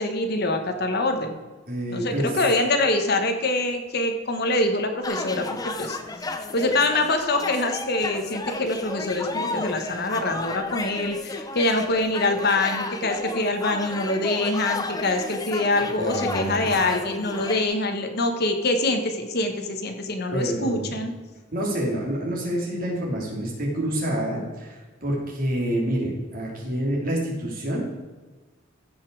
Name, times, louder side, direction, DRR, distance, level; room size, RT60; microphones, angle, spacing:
voice 1, 0.0-1.4 1.9-6.0 6.5-21.1, left 2 dB, 55° left, 6 dB, 1.3 m, -25 dB
voice 2, 1.7-2.3 16.0-16.6 20.3-20.8 21.5-27.8, right 1 dB, 50° right, -2 dB, 3.2 m, -27 dB
sound 1, 5.0-17.6, left 3 dB, 20° left, 0.7 m, -33 dB
15.0 x 5.6 x 4.7 m, 1.3 s
head